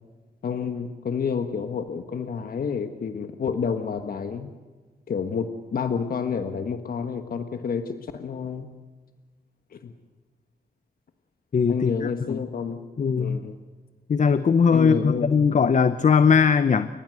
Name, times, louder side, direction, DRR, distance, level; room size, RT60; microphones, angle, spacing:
voice 1, 0.4-4.5 5.1-8.7 9.7-9.9 11.7-12.8 13.2-13.6 14.7-15.3, left 6 dB, 65° left, 7 dB, 1.4 m, -29 dB
voice 2, 11.5-12.4 13.0-13.4 14.1-16.9, left 6 dB, 50° left, 12 dB, 0.8 m, -20 dB
30.0 x 14.5 x 7.8 m, 1.3 s
cardioid pair, 80°, 16 cm